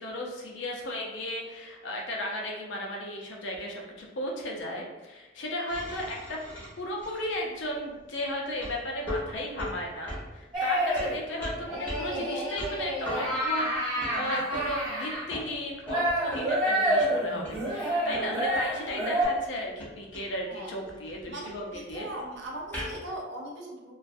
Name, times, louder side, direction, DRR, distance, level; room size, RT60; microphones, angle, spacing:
voice 1, 0.0-6.4 6.8-22.1, left 1 dB, 75° left, -1 dB, 0.5 m, -35 dB
sound 1, 5.7-23.1, left 1 dB, 10° left, 0.7 m, -42 dB
sound 2, 10.5-11.2 11.7-15.2 15.9-19.3, right 1 dB, 25° right, 1.0 m, -28 dB
voice 2, 21.3-23.9, right 1 dB, 65° right, -2 dB, 0.6 m, -40 dB
2.4 x 2.2 x 2.5 m, 1.1 s
head